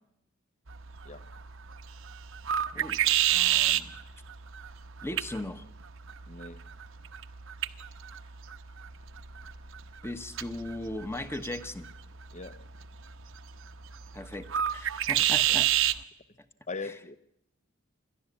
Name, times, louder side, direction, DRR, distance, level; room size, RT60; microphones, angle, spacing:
sound 1, 0.7-16.0, right 11 dB, 65° right, 0.9 m, -31 dB
voice 1, 2.7-3.0 3.3-3.9 5.0-5.6 10.0-11.9 14.1-15.7, left 1 dB, 10° left, 1.0 m, -38 dB
voice 2, 6.3-6.7 12.3-12.7 16.7-17.2, left 4 dB, 35° left, 0.8 m, -40 dB
28.0 x 12.5 x 8.5 m
head